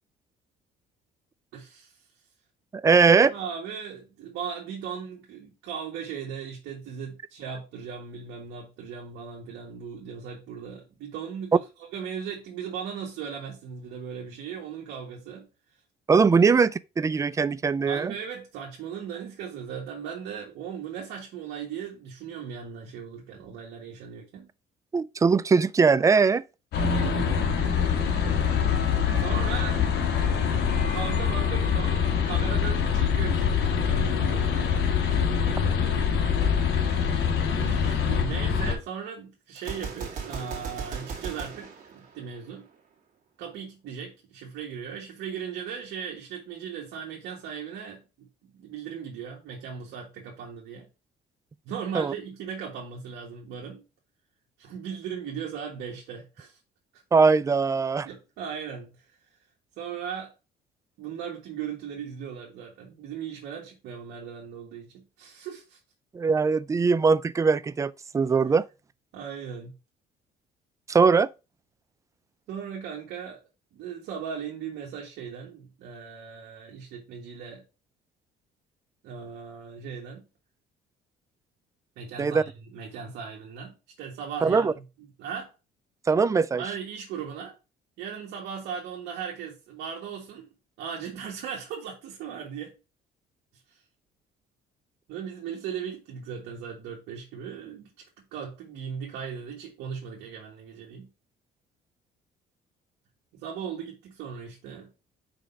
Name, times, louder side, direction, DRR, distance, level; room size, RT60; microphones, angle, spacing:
voice 1, 1.5-1.9 3.3-15.5 17.9-24.5 26.8-27.5 29.2-36.1 37.5-42.7 43.4-50.9 51.6-53.8 54.6-56.6 56.9-57.0 58.0-59.0 59.8-60.3 61.0-65.8 69.1-69.7 72.5-73.4 73.7-77.6 79.0-80.2 82.0-84.7 85.0-85.5 86.6-87.5 88.0-92.7 95.1-97.9 98.3-101.1 103.3-104.9, right 7 dB, 80° right, 1.6 m, -38 dB
voice 2, 2.7-3.3 16.1-18.1 24.9-26.4 51.9-52.1 57.1-58.1 66.1-68.6 70.9-71.3 82.2-82.4 84.4-84.7 86.1-86.6, right 5 dB, 20° right, 0.3 m, -21 dB
sound 1, 26.7-38.7, left 7 dB, 75° left, 1.3 m, -24 dB
Gunshot gunfire, 39.6-42.7, right 5 dB, 50° right, 2.2 m, -37 dB
5.2 x 3.6 x 5.6 m
cardioid pair, 110°, 17 cm